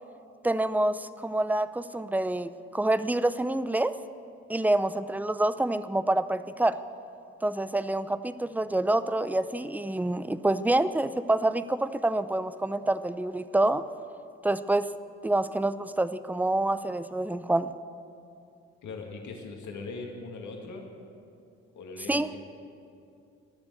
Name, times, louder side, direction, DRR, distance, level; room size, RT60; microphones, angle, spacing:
voice 1, 0.4-3.9 4.5-6.8 7.4-13.8 14.4-14.9 15.2-17.7 22.1-22.3, right 1 dB, 5° right, 14 dB, 0.6 m, -27 dB
voice 2, 18.8-20.9 21.7-22.4, left 3 dB, 70° left, 1 dB, 2.2 m, -40 dB
21.0 x 7.1 x 7.8 m, 2.6 s
hypercardioid pair, 50°, 31 cm